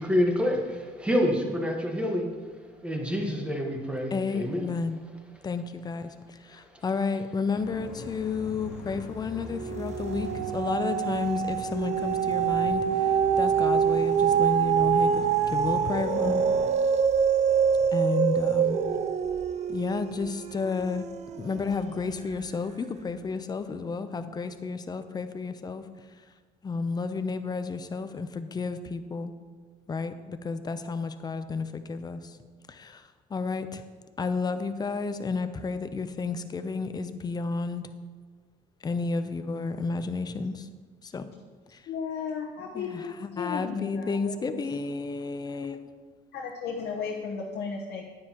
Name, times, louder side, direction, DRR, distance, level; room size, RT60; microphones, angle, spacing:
voice 1, 0.0-2.3 2.8-4.6, equal, 5° right, 1 dB, 1.4 m, -27 dB
voice 2, 4.1-5.0 5.4-16.4 17.9-18.8 19.7-21.0 21.4-25.8 26.6-29.3 29.9-32.4 32.7-33.8 34.2-37.9 38.8-40.7 41.0-41.3 41.7-41.9 42.7-45.9, left 4 dB, 25° left, 10 dB, 0.6 m, -31 dB
sound 1, 7.5-16.7, left 3 dB, 90° left, 1.5 m, -42 dB
sound 2, 8.4-9.0 9.3-21.8 22.4-22.5, right 7 dB, 40° right, 0.5 m, -25 dB
voice 3, 41.9-44.6 46.3-48.0, left 5 dB, 70° left, -1 dB, 1.1 m, -35 dB
9.6 x 9.5 x 3.0 m, 1.5 s
cardioid pair, 110°, 17 cm